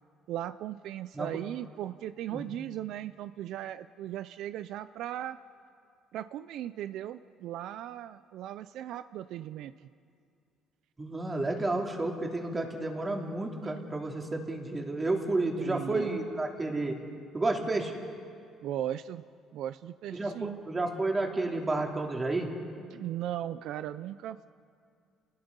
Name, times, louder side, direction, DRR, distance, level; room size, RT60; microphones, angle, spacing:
voice 1, 0.3-5.4 6.1-9.9 15.6-16.2 18.6-19.2 19.5-20.6 22.9-24.5, right 12 dB, 75° right, 13 dB, 0.5 m, -37 dB
voice 2, 11.0-16.9 17.3-17.9 20.1-22.5, right 2 dB, 20° right, 1 dB, 3.1 m, -31 dB
29.5 x 19.5 x 5.4 m, 2.3 s
cardioid pair, 110°, 0 cm